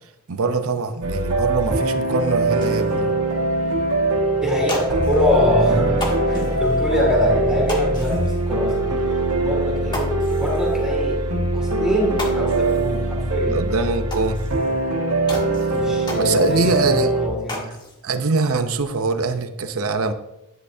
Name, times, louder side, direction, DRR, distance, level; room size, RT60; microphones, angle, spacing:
voice 1, 0.3-3.1 5.9-6.0 13.5-14.4 16.2-17.1 18.0-20.1, right 3 dB, 70° right, 9 dB, 0.7 m, -23 dB
sound 1, 1.0-17.3, right 2 dB, 90° right, 1.7 m, -22 dB
sound 2, 2.6-3.0 3.6-3.7 4.0-4.1 4.5-5.5 5.9-6.8 7.7-8.5 8.9-9.0 9.4-9.5 9.9-10.8 11.6-11.7 12.0-13.0 13.4-13.5 14.1-14.8 15.3-16.8 17.1-18.0 18.4-19.0, left 1 dB, 20° left, 1.6 m, -34 dB
voice 2, 4.4-8.9 9.4-11.2 11.5-13.6 15.7-17.7, left 1 dB, 5° right, -3 dB, 2.2 m, -24 dB
10.5 x 9.9 x 2.7 m, 0.91 s
head